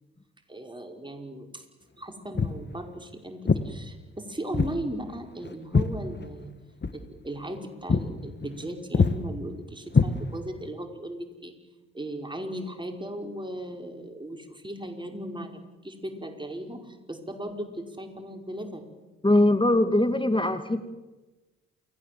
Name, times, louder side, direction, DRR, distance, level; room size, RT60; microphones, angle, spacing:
voice 1, 0.5-1.6 2.0-6.5 6.9-11.5 11.9-15.5 15.8-18.9, right 1 dB, 15° right, 3 dB, 5.2 m, -37 dB
Walk footsteps, 2.3-2.6 3.5-3.7 4.5-4.8 5.1-6.5 6.8-7.0 7.4-7.6 7.9-8.1 8.4-8.7 8.9-9.2 9.9-10.6, left 4 dB, 30° left, 1.9 m, -24 dB
voice 2, 19.2-20.8, left 1 dB, 15° left, 9 dB, 2.4 m, -21 dB
29.0 x 19.0 x 7.7 m, 1.1 s
hypercardioid pair, 40°, 35 cm